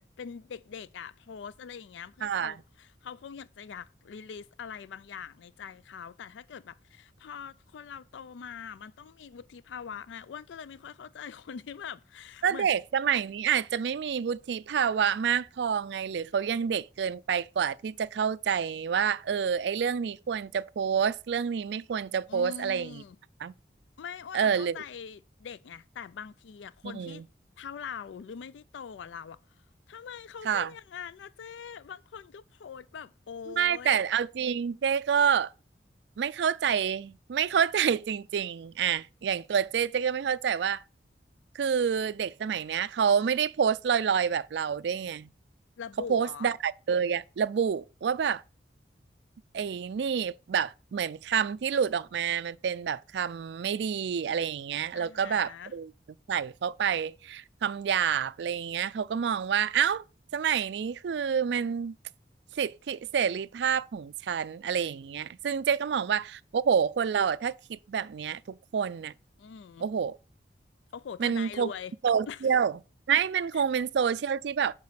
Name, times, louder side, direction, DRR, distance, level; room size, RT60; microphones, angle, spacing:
voice 1, 0.0-12.7 22.3-23.2 24.0-27.3 27.6-29.4 29.9-34.0 45.8-46.5 54.9-55.7 69.4-69.9 70.9-71.9 72.3-72.4 73.5-73.6, left 7 dB, 85° left, 0.4 m, -43 dB
voice 2, 2.2-2.5 12.4-23.0 23.4-23.5 24.3-24.7 26.8-27.2 30.4-30.7 33.5-35.5 36.2-40.8 41.5-45.3 46.1-48.4 49.5-55.9 56.3-60.0 60.3-62.0 62.6-69.1 69.8-70.2 71.2-71.7 72.0-72.7 73.1-74.7, right 7 dB, 75° right, 0.4 m, -28 dB
7.4 x 4.8 x 5.7 m
head